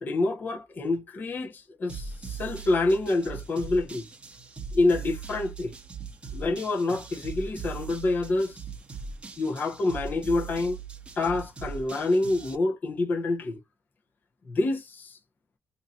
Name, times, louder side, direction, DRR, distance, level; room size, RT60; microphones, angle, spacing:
voice 1, 0.0-4.0 4.7-5.7 6.3-8.6 9.4-10.8 11.2-13.6 14.5-15.2, left 2 dB, 40° left, 0.9 m, -27 dB
sound 1, 1.9-12.5, right 5 dB, 20° right, 0.9 m, -40 dB
2.8 x 2.7 x 3.6 m
cardioid pair, 135°, 5 cm